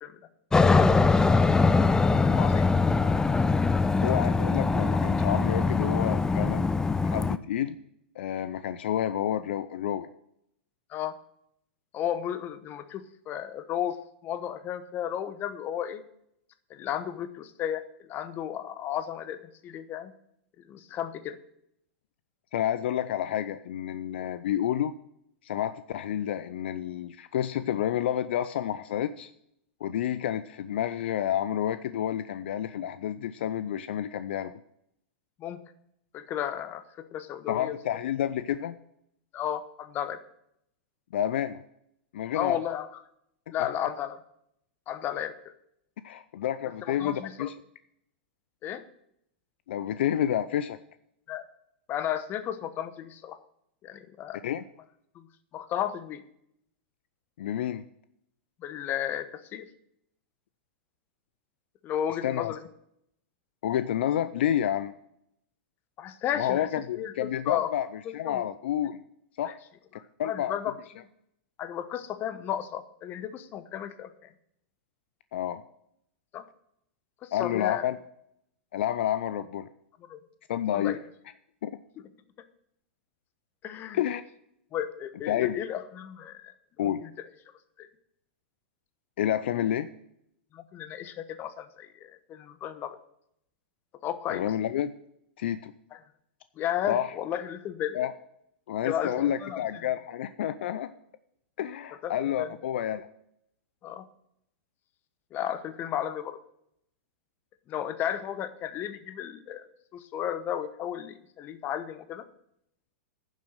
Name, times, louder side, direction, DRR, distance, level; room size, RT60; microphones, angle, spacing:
Aircraft, 0.5-7.4, left 4 dB, 10° left, 0.4 m, -22 dB
voice 1, 2.2-2.7 10.9-11.2 11.9-14.0 14.2-16.0 16.7-20.1 20.6-21.4 24.1-24.3 35.4-35.6 36.1-37.8 39.3-40.2 42.3-42.9 43.5-44.2 44.9-45.5 46.8-47.5 48.6-48.8 51.3-51.4 51.9-53.4 53.8-54.4 55.1-55.3 55.5-56.2 58.6-59.7 61.8-62.7 66.0-66.7 66.9-67.7 68.0-68.4 69.4-69.5 69.9-71.1 71.6-74.3 76.3-76.5 77.2-77.9 80.0-80.2 80.7-81.0 82.0-82.1 83.6-84.0 84.7-86.5 86.8-87.3 87.8-87.9 90.5-93.0 94.0-94.5 95.9-96.0 96.6-98.0 98.8-99.9 102.0-102.5 103.8-104.1 105.3-106.4 107.7-109.7 109.9-112.3, left 10 dB, 35° left, 13 dB, 1.0 m, -34 dB
voice 2, 3.7-7.8 8.2-10.1 22.5-24.9 25.4-29.3 29.8-34.6 37.5-38.8 41.1-41.6 42.1-42.6 46.0-47.5 49.7-50.8 54.4-54.6 57.4-57.8 62.2-62.5 63.6-64.9 66.4-67.9 68.1-69.0 69.4-69.5 70.2-70.6 75.3-75.6 77.3-78.0 78.7-79.7 80.5-81.0 81.6-81.7 83.9-84.2 85.3-85.5 86.8-87.0 89.2-89.9 94.3-94.9 95.4-95.7 96.9-97.1 97.9-98.1 98.7-100.9 101.6-103.1, left 11 dB, 65° left, 13 dB, 0.5 m, -29 dB
10.5 x 7.4 x 6.3 m, 0.74 s
hypercardioid pair, 105°, 6 cm